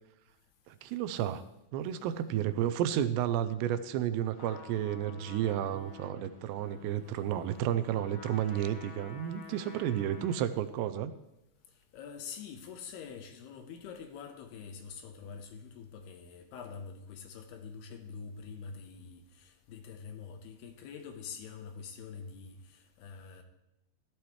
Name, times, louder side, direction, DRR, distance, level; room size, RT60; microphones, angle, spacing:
voice 1, 0.7-1.5 1.7-11.1, right 10 dB, 85° right, 2.8 m, -32 dB
Trumpet, 4.3-10.6, left 5 dB, 45° left, 2.8 m, -50 dB
voice 2, 11.9-23.4, left 6 dB, 75° left, 2.8 m, -45 dB
15.5 x 12.0 x 3.2 m
omnidirectional pair, 5.0 m